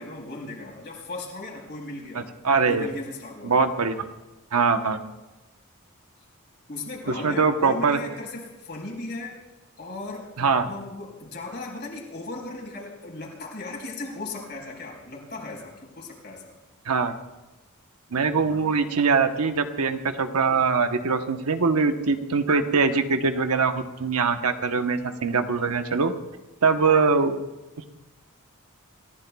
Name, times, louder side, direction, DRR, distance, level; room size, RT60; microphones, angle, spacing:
voice 1, 0.0-2.3 2.6-3.7 6.7-9.3 9.8-16.5, left 2 dB, 50° left, -1 dB, 4.6 m, -37 dB
voice 2, 2.1-2.9 3.4-4.1 4.5-5.0 7.1-8.0 10.4-10.7 16.8-17.1 18.1-26.1 26.6-27.4 27.8-27.9, right 4 dB, 85° right, 7 dB, 1.0 m, -22 dB
28.5 x 15.0 x 2.3 m, 1.1 s
head